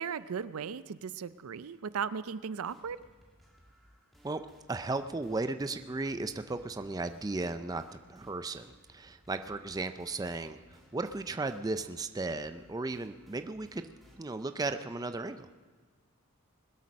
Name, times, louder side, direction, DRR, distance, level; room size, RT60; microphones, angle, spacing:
voice 1, 0.0-3.0, right 6 dB, 80° right, 16 dB, 0.5 m, -36 dB
sound 1, 2.7-14.7, equal, ahead, 1.7 m, -62 dB
voice 2, 4.7-15.5, right 3 dB, 15° right, 10 dB, 0.4 m, -36 dB
21.0 x 8.2 x 6.4 m, 1.5 s
head